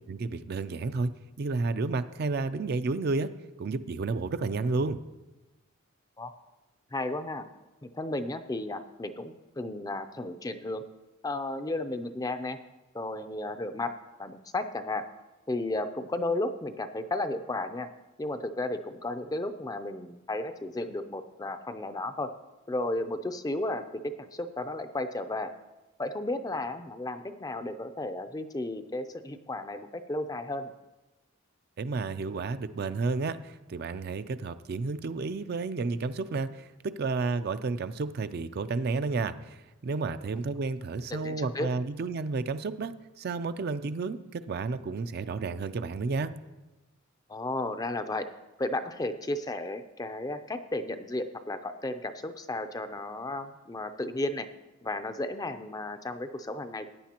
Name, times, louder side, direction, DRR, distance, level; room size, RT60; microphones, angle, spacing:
voice 1, 0.1-1.1 1.4-3.3 3.6-5.0 31.8-39.6 39.8-46.3, right 3 dB, 50° right, 11 dB, 0.4 m, -31 dB
voice 2, 6.9-7.4 7.8-10.8 11.2-12.6 12.9-13.9 14.2-15.0 15.5-17.9 18.2-22.3 22.7-25.5 26.0-30.7 41.1-41.7 47.3-48.3 48.6-54.5 54.8-56.9, left 2 dB, 20° left, 9 dB, 0.4 m, -33 dB
16.0 x 9.5 x 2.9 m, 1.1 s
head